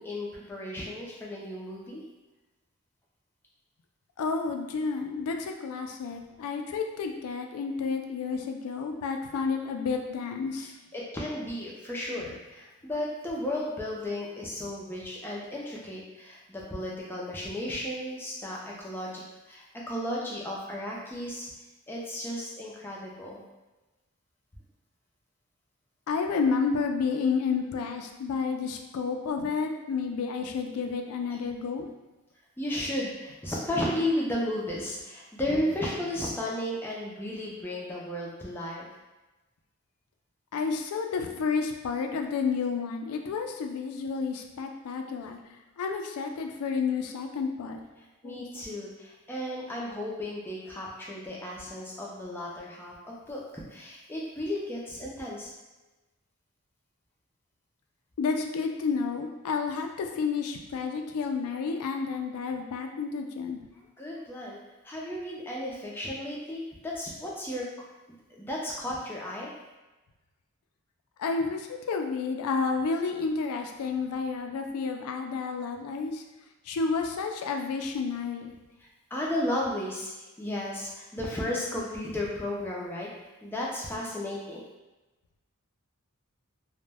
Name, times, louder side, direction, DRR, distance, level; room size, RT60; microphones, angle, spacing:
voice 1, 0.0-2.0 10.6-19.2 19.5-21.5 21.9-23.4 31.3-31.4 32.6-38.9 48.0-55.5 64.0-64.6 64.8-67.7 68.3-69.5 79.1-83.1 83.4-84.6, left 1 dB, 10° left, -4 dB, 0.4 m, -34 dB
voice 2, 4.2-10.7 26.1-31.9 40.5-45.4 45.8-47.8 48.2-48.4 58.2-63.6 71.2-76.2 76.7-78.5, left 5 dB, 85° left, 4 dB, 0.3 m, -30 dB
2.1 x 2.1 x 3.3 m, 1.1 s
head